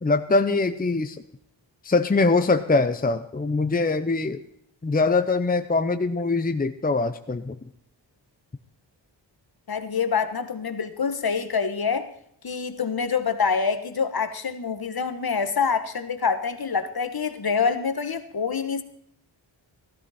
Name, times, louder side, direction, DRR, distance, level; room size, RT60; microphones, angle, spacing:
voice 1, 0.0-1.2 1.8-4.4 4.8-7.6, left 3 dB, 20° left, 0.7 m, -23 dB
voice 2, 9.7-12.1 12.4-18.8, left 5 dB, 50° left, 1.3 m, -26 dB
16.0 x 13.5 x 4.3 m
wide cardioid pair, 85°, 45 cm